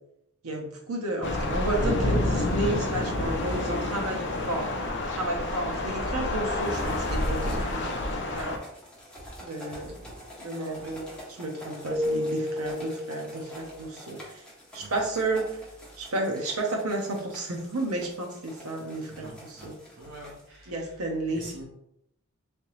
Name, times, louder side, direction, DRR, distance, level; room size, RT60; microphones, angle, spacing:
voice 1, 0.4-8.5 9.4-10.0 10.4-11.0 11.4-14.4 14.7-15.6 16.0-19.7 20.7-21.4, right 2 dB, 85° right, 1 dB, 0.9 m, -32 dB
Thunder / Rain, 1.2-8.6, left 2 dB, 55° left, 0.5 m, -28 dB
sound 1, 6.6-20.5, equal, 5° left, 0.9 m, -47 dB
voice 2, 9.8-10.3 10.8-11.2 14.8-14.9 19.1-19.7 20.0-21.6, right 1 dB, 60° right, -3 dB, 1.1 m, -46 dB
Keyboard (musical), 11.9-13.9, left 1 dB, 20° right, 0.6 m, -31 dB
3.5 x 2.8 x 3.1 m, 0.77 s
head